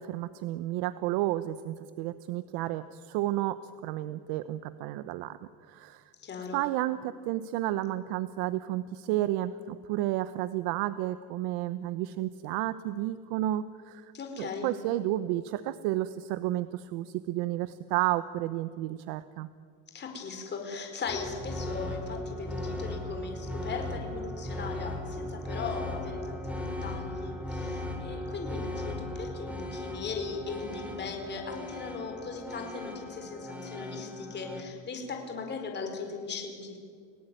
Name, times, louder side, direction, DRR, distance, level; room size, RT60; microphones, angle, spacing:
voice 1, 0.0-5.4 5.7-6.0 6.5-14.1 14.4-19.5, right 14 dB, 75° right, 13 dB, 1.0 m, -31 dB
voice 2, 6.2-6.6 14.1-14.7 19.9-36.8, left 5 dB, 25° left, 3 dB, 4.7 m, -38 dB
sound 1, 21.1-34.6, left 1 dB, 5° right, 3.1 m, -37 dB
30.0 x 18.5 x 9.2 m, 2.2 s
cardioid pair, 155°, 40 cm